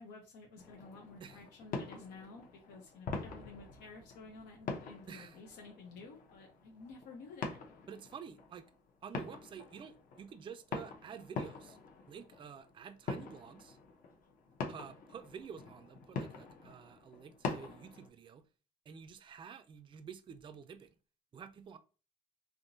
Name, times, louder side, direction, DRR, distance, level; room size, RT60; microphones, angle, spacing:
voice 1, 0.0-7.6, left 3 dB, 90° left, 0.8 m, -52 dB
sound 1, 0.6-18.1, left 4 dB, 55° left, 0.9 m, -45 dB
voice 2, 5.1-5.4 7.9-8.7 9.0-11.8 12.1-13.8 14.7-18.5 18.9-21.0 21.3-21.8, right 7 dB, 30° right, 0.4 m, -50 dB
3.5 x 2.7 x 2.7 m
cardioid pair, 110°, 17 cm